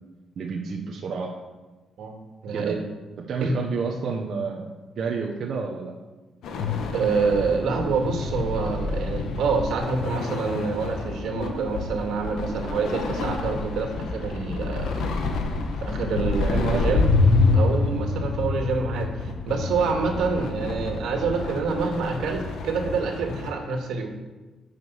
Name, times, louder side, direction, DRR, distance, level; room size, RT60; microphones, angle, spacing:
voice 1, 0.4-1.3 2.5-2.8 3.3-5.9 16.3-17.1, right 5 dB, 50° right, -1 dB, 1.2 m, -30 dB
voice 2, 2.4-2.8 3.4-3.6 6.9-15.0 15.8-17.1 17.5-24.1, right 4 dB, 75° right, 3 dB, 2.2 m, -27 dB
sound 1, 6.4-23.5, left 3 dB, 75° left, 1.4 m, -27 dB
10.5 x 7.0 x 7.2 m, 1.2 s
cardioid pair, 145°, 0 cm